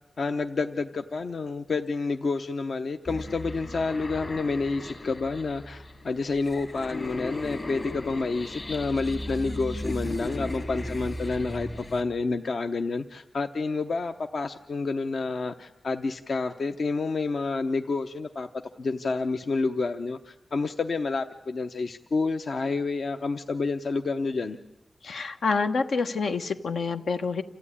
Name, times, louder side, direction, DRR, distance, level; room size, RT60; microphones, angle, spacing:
voice 1, 0.2-18.5 18.8-24.6, left 3 dB, 60° left, 7 dB, 0.7 m, -29 dB
sound 1, 3.1-12.0, left 1 dB, 35° left, 1.5 m, -36 dB
voice 2, 25.0-27.4, left 4 dB, 90° left, 6 dB, 1.2 m, -27 dB
27.5 x 14.5 x 9.9 m, 0.98 s
wide cardioid pair, 135°, 0 cm